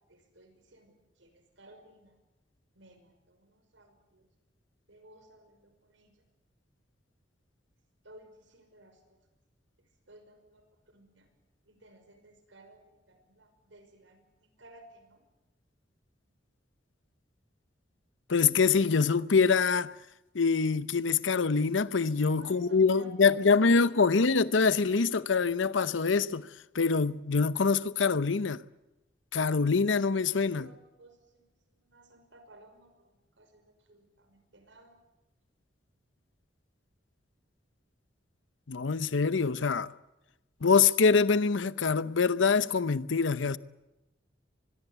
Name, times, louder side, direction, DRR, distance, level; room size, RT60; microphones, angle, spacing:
voice 1, 0.1-2.2 2.7-4.3 4.9-6.2 8.0-9.2 9.8-11.3 11.7-15.2 22.3-24.2 29.8-29.9 30.6-31.5 31.8-35.0, right 1 dB, 85° right, 5.6 m, -56 dB
voice 2, 18.3-19.9 20.3-26.5 26.7-28.6 29.3-30.7 38.7-39.9 40.6-43.6, left 5 dB, 90° left, 0.8 m, -25 dB
24.5 x 21.5 x 8.1 m
head